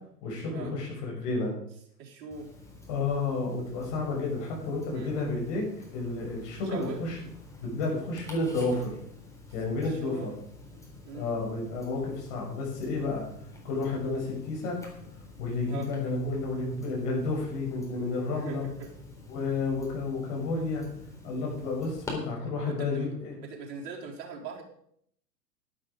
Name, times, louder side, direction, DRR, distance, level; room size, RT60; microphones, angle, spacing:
voice 1, 0.2-1.5 2.9-5.6 5.9-7.2 7.6-9.0 9.5-10.3 11.1-13.2 13.6-14.8 15.4-18.6 19.3-20.8 21.2-23.3, left 3 dB, 50° left, -2 dB, 6.7 m, -31 dB
voice 2, 2.0-2.5 4.9-5.1 6.5-7.0 9.8-10.3 11.0-11.3 14.0-14.2 15.7-15.9 18.3-18.9 22.7-23.1 23.4-24.6, right 5 dB, 45° right, -2 dB, 4.2 m, -41 dB
Tick-tock, 2.3-22.1, left 2 dB, 5° left, 4.0 m, -48 dB
12.0 x 11.5 x 5.1 m, 0.69 s
figure-of-eight pair, 100°, 48 cm